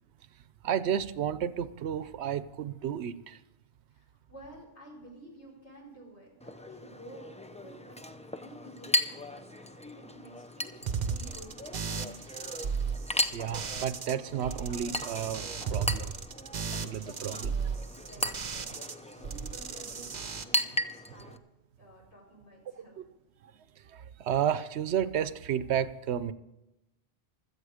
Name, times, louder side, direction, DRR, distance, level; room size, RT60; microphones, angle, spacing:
voice 1, 0.6-3.4 13.3-16.1 16.8-17.5 22.8-22.9 23.9-26.3, right 9 dB, 80° right, 15 dB, 0.9 m, -32 dB
voice 2, 3.9-12.0 17.2-21.4 21.8-23.0, right 1 dB, 80° left, -4 dB, 5.2 m, -52 dB
Chink clink, 6.4-21.4, left 1 dB, 10° left, 0.4 m, -37 dB
sound 1, 10.9-14.1 14.4-18.9 19.2-20.4, right 6 dB, 45° right, 0.8 m, -35 dB
16.5 x 12.5 x 5.0 m, 0.94 s
omnidirectional pair, 1.1 m